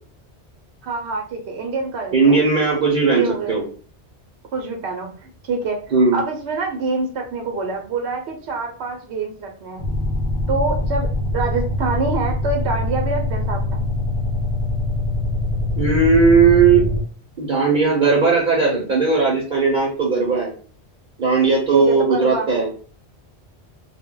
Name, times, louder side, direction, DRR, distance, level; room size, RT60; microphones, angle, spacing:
voice 1, 0.8-2.4 3.1-3.5 4.5-5.8 6.1-9.9 10.5-13.8 21.7-22.5, right 3 dB, 80° right, 3 dB, 0.9 m, -26 dB
voice 2, 2.1-3.6 5.9-6.2 15.8-16.8 17.4-20.5 21.2-22.7, right 4 dB, 50° right, -3 dB, 0.7 m, -17 dB
sound 1, 9.8-17.0, left 1 dB, 55° left, 0.6 m, -23 dB
2.1 x 2.1 x 3.6 m, 0.41 s
omnidirectional pair, 1.1 m